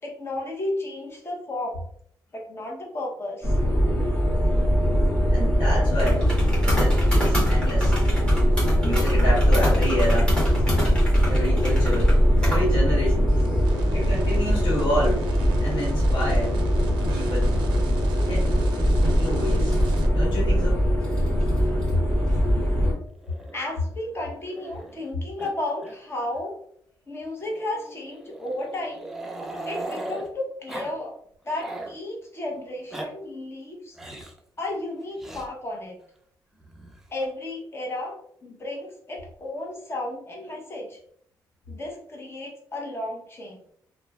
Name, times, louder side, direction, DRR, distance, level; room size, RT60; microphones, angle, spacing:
voice 1, 0.0-1.8 2.3-3.6 21.6-21.9 23.5-26.5 27.1-29.1 29.6-31.2 31.4-34.2 34.6-36.0 37.1-41.0 41.7-43.6, left 1 dB, 30° left, -1 dB, 0.9 m, -33 dB
sound 1, 3.4-22.9, equal, 10° left, 1.3 m, -21 dB
voice 2, 5.3-8.0 8.8-10.4 11.2-12.1 12.4-13.3 13.9-16.6 17.1-17.5 18.2-18.6 19.0-19.7 20.1-20.8, equal, 75° left, -5 dB, 1.2 m, -29 dB
sound 2, 13.3-20.1, right 4 dB, 90° right, 0.4 m, -40 dB
Growling, 23.2-25.1 25.4-25.5 25.8-26.0 26.3-26.4 27.4-30.3 30.7-30.9 31.3-32.0 32.7-33.1 34.0-34.4 35.2-35.5 36.6-37.3, right 2 dB, 5° right, 0.5 m, -38 dB
3.0 x 2.2 x 2.3 m, 0.65 s
cardioid pair, 85°, 8 cm